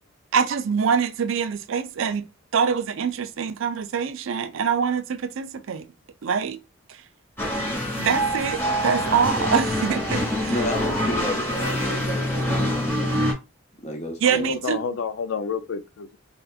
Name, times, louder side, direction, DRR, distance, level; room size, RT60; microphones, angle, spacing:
voice 1, 0.3-2.3 2.5-5.8 6.2-6.6 6.9-7.0 8.0-10.5 14.2-14.8, right 6 dB, 70° right, 0.4 m, -24 dB
sound 1, 7.4-13.3, equal, 10° left, 1.2 m, -25 dB
voice 2, 10.5-13.2 13.8-14.5, equal, 30° left, 0.8 m, -31 dB
voice 3, 14.3-16.2, left 5 dB, 70° left, 0.4 m, -29 dB
3.3 x 2.7 x 2.4 m
head